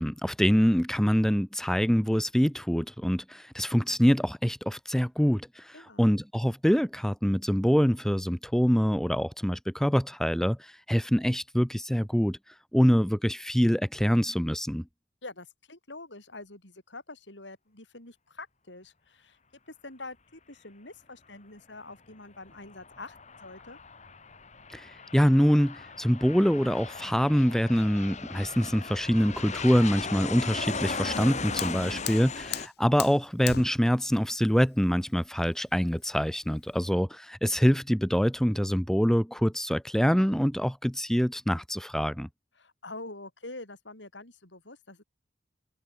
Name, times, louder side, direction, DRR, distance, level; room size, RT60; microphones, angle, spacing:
voice 1, 0.0-12.4 12.7-14.8 24.7-42.3, equal, 5° left, 1.3 m, -25 dB
voice 2, 5.7-6.1 15.2-19.4 19.7-23.8 31.8-32.3 42.6-45.0, left 2 dB, 75° left, 7.6 m, -45 dB
Aircraft, 22.5-32.7, left 4 dB, 40° left, 3.1 m, -37 dB
Fire, 31.0-36.9, left 10 dB, 60° left, 1.6 m, -40 dB
head